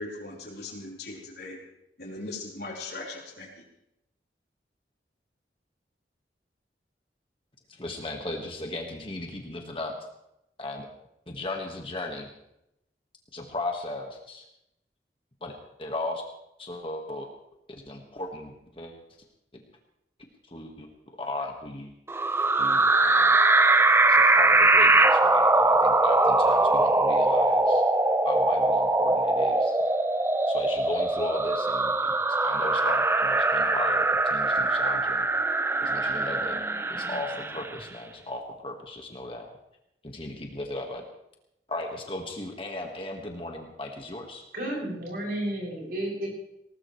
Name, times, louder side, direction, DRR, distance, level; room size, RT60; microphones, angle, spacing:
voice 1, 0.0-1.6 2.0-3.5, left 2 dB, 60° left, -3 dB, 4.4 m, -39 dB
voice 2, 7.7-9.9 10.6-10.9 11.3-12.3 13.3-14.4 15.4-15.5 15.8-16.2 16.6-17.3 17.8-18.9 20.4-20.9 21.2-21.9 22.6-23.4 24.1-27.8 28.2-29.8 30.5-32.1 32.4-35.3 35.8-36.6 36.9-39.5 40.0-41.0 41.7-44.4, left 2 dB, 30° left, 1 dB, 1.7 m, -36 dB
sound 1, 22.1-37.8, right 2 dB, 15° right, 0.6 m, -22 dB
voice 3, 44.5-46.3, right 1 dB, 55° right, -3 dB, 7.5 m, -32 dB
20.0 x 19.0 x 3.3 m, 0.83 s
head